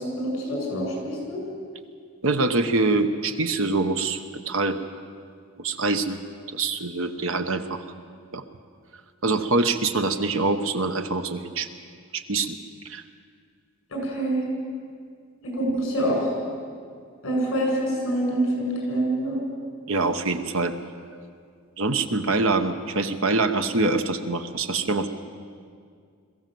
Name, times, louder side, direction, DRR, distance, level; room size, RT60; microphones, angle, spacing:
voice 1, 0.0-1.4 13.9-14.4 15.4-16.3 17.2-19.4, right 1 dB, 65° left, -1 dB, 7.3 m, -26 dB
voice 2, 2.2-4.2 4.5-4.8 5.6-6.2 6.5-7.8 8.3-8.4 9.2-11.7 12.1-12.6 12.8-13.0 19.9-20.7 21.8-25.1, right 3 dB, 65° right, 8 dB, 1.1 m, -24 dB
22.0 x 15.0 x 7.8 m, 2.1 s
head